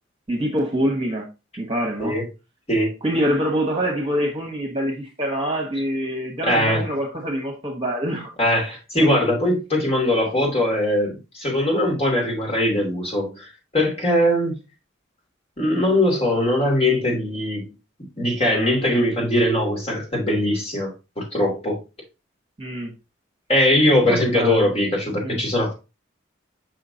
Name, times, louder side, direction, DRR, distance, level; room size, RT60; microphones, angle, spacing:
voice 1, 0.3-1.3 1.6-2.2 3.0-8.6 8.9-9.3 22.6-22.9 24.1-24.7 25.2-25.4, equal, 30° right, 1.4 m, -25 dB
voice 2, 6.4-6.8 8.4-13.5 13.7-14.5 15.6-17.7 18.2-21.8 23.5-25.7, left 1 dB, 30° left, 2.7 m, -21 dB
6.0 x 5.8 x 2.8 m
head